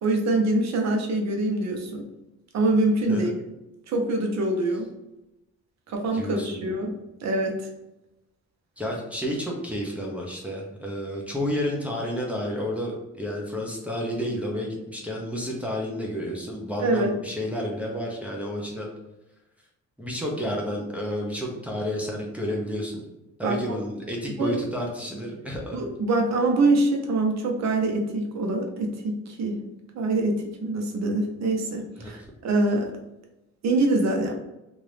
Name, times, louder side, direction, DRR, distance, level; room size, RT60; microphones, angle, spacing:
voice 1, 0.0-2.1 2.5-3.3 3.9-4.9 5.9-6.9 7.2-7.7 16.8-17.1 23.4-23.8 24.4-24.6 25.7-29.6 29.9-32.9 33.6-34.4, right 2 dB, 60° right, 2 dB, 0.8 m, -24 dB
voice 2, 6.1-6.7 8.8-18.9 20.0-23.0 23.4-25.8 32.0-32.3, equal, 5° right, -3 dB, 0.7 m, -31 dB
2.9 x 2.6 x 3.3 m, 0.94 s
cardioid pair, 90°, 30 cm